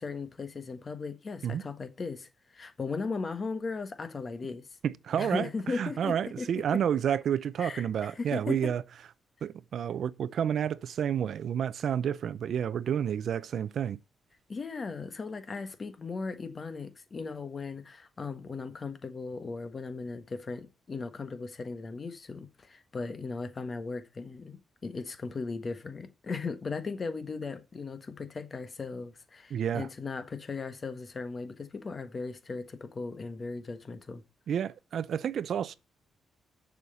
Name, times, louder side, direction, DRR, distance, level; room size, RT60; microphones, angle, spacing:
voice 1, 0.0-4.7 5.2-6.5 7.6-8.7 14.5-34.2, left 4 dB, 35° left, 1.5 m, -37 dB
voice 2, 4.8-8.8 9.4-14.0 29.5-29.9 34.5-35.8, right 8 dB, 65° right, 0.5 m, -30 dB
7.0 x 6.4 x 6.7 m
cardioid pair, 95°, 0 cm